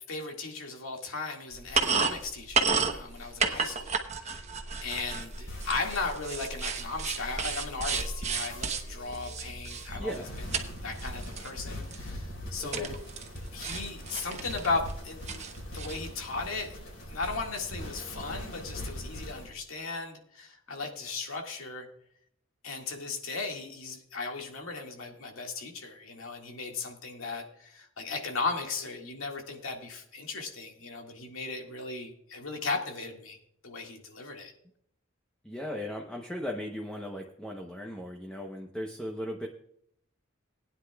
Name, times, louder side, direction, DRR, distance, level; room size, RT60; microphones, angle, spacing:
voice 1, 0.1-4.4 4.8-10.2 10.7-13.0 13.5-15.4 15.7-16.7 17.1-21.9 22.6-33.4 33.6-34.5, left 3 dB, 85° left, 2 dB, 2.0 m, -36 dB
sound 1, 1.5-10.7 10.9-11.5 11.9-12.0 12.7-13.4 13.6-14.9 15.3-16.0, right 5 dB, 35° right, 1.0 m, -32 dB
sound 2, 5.1-19.5, equal, 70° left, 4.7 m, -42 dB
voice 2, 10.0-10.3 12.7-12.9 35.4-39.5, equal, 5° left, 0 dB, 0.8 m, -37 dB
20.0 x 9.8 x 2.3 m, 0.69 s
head